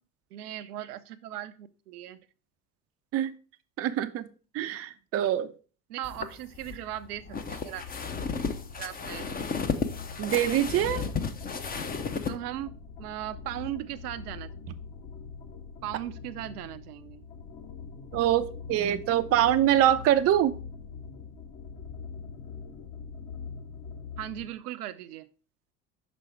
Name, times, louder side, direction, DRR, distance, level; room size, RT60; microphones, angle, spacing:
voice 1, 0.3-2.2 5.9-7.8 8.8-9.3 12.3-14.5 15.8-17.2 24.2-25.3, right 13 dB, 75° right, 0.6 m, -38 dB
voice 2, 3.8-4.3 4.5-5.5 10.2-11.1 18.1-20.5, right 11 dB, 30° right, 0.5 m, -24 dB
sound 1, 6.0-12.3, left 5 dB, 20° left, 0.7 m, -33 dB
sound 2, 7.1-24.5, left 5 dB, 55° left, 2.1 m, -43 dB
6.0 x 5.1 x 4.6 m
hypercardioid pair, 75°, 47 cm